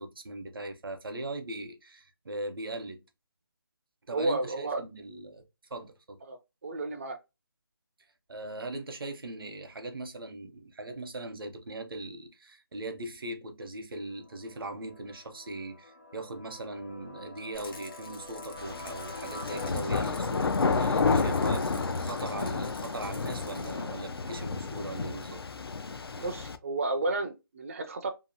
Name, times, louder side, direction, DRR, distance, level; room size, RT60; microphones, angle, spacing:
voice 1, 0.0-3.0 4.1-6.2 8.3-25.4, right 2 dB, 70° right, 0.8 m, -40 dB
voice 2, 4.1-4.8 6.3-6.4 6.6-7.2 26.1-28.1, right 2 dB, 35° right, 0.4 m, -31 dB
sound 1, 14.1-19.7, left 2 dB, 35° left, 0.4 m, -46 dB
Rattle, 17.5-23.8, left 3 dB, 70° left, 0.9 m, -50 dB
sound 2, 18.6-26.6, left 4 dB, 85° left, 0.4 m, -30 dB
2.8 x 2.4 x 2.6 m
figure-of-eight pair, 160°, 12 cm